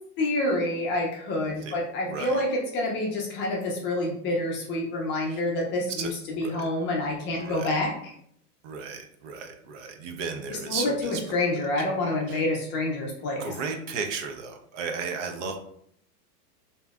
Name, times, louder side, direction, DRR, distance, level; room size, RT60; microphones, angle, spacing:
voice 1, 0.2-7.9 10.5-13.5, left 1 dB, 25° left, -1 dB, 0.5 m, -28 dB
voice 2, 1.4-1.8 2.1-2.4 5.3-5.4 5.9-6.6 7.4-7.7 8.6-11.4 12.3-12.4 13.4-15.6, right 5 dB, 50° right, 4 dB, 0.6 m, -35 dB
3.0 x 2.7 x 2.3 m, 0.67 s
hypercardioid pair, 125°, 47 cm